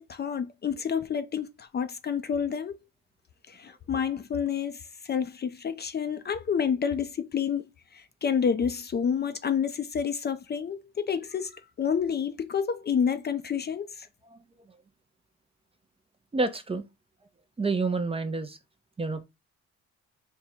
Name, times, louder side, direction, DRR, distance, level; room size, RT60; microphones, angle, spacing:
voice 1, 0.0-2.8 3.5-7.7 7.9-14.1, left 7 dB, 35° left, 0.4 m, -29 dB
voice 2, 16.3-16.8 17.6-18.6 19.0-19.2, right 3 dB, 20° right, 0.5 m, -28 dB
3.6 x 2.1 x 4.3 m
cardioid pair, 90°, 30 cm